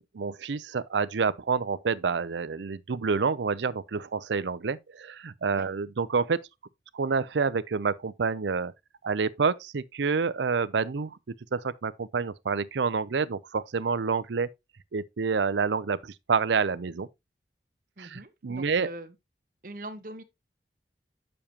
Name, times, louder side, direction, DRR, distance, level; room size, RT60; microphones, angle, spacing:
voice 1, 0.0-6.4 6.9-8.7 9.0-11.2 11.5-14.5 14.9-17.1 18.0-18.9, right 5 dB, 90° right, 0.5 m, -28 dB
voice 2, 18.0-19.1 19.6-20.2, right 1 dB, 50° right, 1.1 m, -42 dB
8.6 x 6.9 x 2.9 m
head